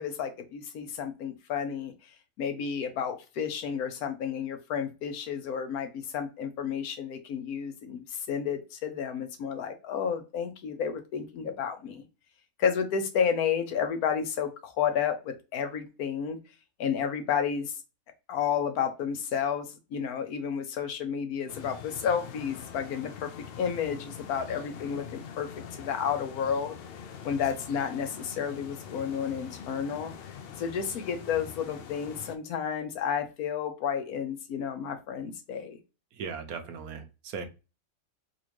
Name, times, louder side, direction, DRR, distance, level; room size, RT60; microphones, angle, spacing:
voice 1, 0.0-2.1 2.4-12.0 12.6-16.4 16.8-17.7 18.3-23.3 23.6-26.8 27.2-35.8, left 7 dB, 90° left, 7 dB, 1.3 m, -31 dB
sound 1, 21.5-32.4, left 7 dB, 70° left, 0.5 m, -44 dB
voice 2, 36.1-37.5, right 5 dB, 85° right, 7 dB, 1.2 m, -38 dB
4.1 x 2.6 x 2.9 m, 0.29 s
omnidirectional pair, 1.5 m